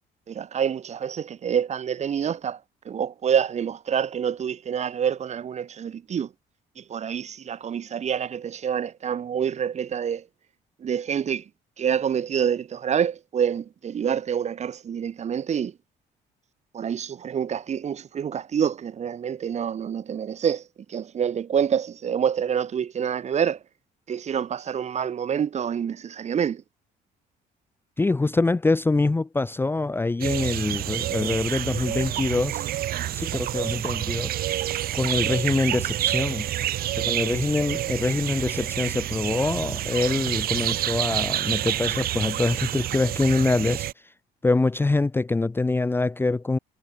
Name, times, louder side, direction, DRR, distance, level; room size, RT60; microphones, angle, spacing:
voice 1, 0.3-2.6 2.9-6.3 6.8-10.2 10.8-11.4 11.8-15.7 16.7-20.6 20.9-23.6 24.1-26.6, right 8 dB, 40° right, 1.7 m, -27 dB
voice 2, 28.0-32.6 33.1-34.4 34.9-36.5 37.0-43.9 44.4-46.6, left 3 dB, 15° left, 0.7 m, -24 dB
sound 1, 30.2-43.9, right 13 dB, 60° right, 1.2 m, -28 dB
cardioid pair, 110°, 17 cm